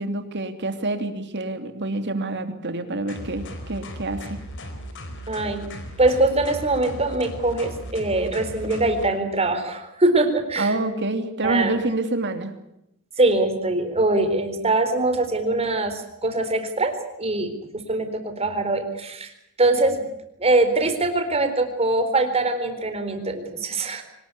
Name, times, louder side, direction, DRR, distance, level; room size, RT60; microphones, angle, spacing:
voice 1, 0.0-4.4 10.6-12.5, right 2 dB, 55° right, 7 dB, 2.9 m, -27 dB
sound 1, 3.1-9.1, equal, 60° left, 4.5 m, -37 dB
voice 2, 5.3-5.7 6.0-10.7 11.4-11.7 13.2-19.3 19.6-20.1 20.4-24.0, right 2 dB, 30° right, 7 dB, 4.0 m, -23 dB
24.5 x 19.5 x 8.5 m, 0.82 s
head